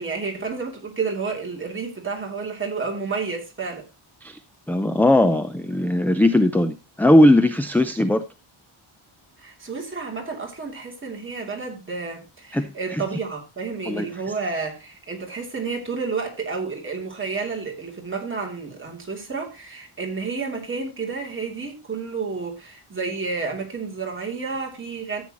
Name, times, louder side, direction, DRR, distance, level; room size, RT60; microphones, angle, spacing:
voice 1, 0.0-3.8 9.4-25.2, right 4 dB, 25° right, 3.0 m, -30 dB
voice 2, 4.7-8.2 12.5-13.0 13.9-14.1, left 1 dB, 5° left, 0.5 m, -19 dB
14.0 x 8.6 x 3.0 m
wide cardioid pair, 165°, 50 cm